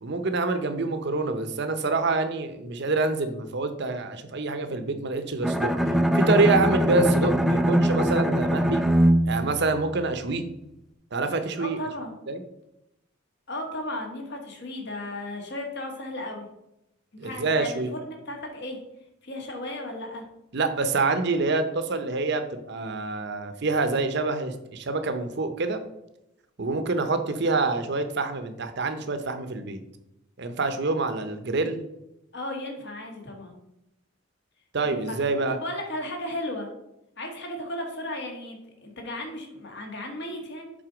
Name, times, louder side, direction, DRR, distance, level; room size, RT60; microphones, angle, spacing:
voice 1, 0.0-5.8 6.1-8.8 9.3-10.4 11.1-11.8 12.3-12.4 17.2-17.9 20.5-25.8 26.6-29.8 30.4-31.8 34.7-35.6, right 3 dB, 55° right, 8 dB, 0.7 m, -26 dB
Bowed string instrument, 5.4-10.5, equal, ahead, 0.3 m, -23 dB
voice 2, 11.6-12.1 13.5-16.5 17.1-18.8 19.2-20.2 32.3-33.6 34.8-35.2 35.6-36.7 37.2-40.7, left 1 dB, 55° left, 2 dB, 1.5 m, -35 dB
7.6 x 4.0 x 5.0 m, 0.86 s
head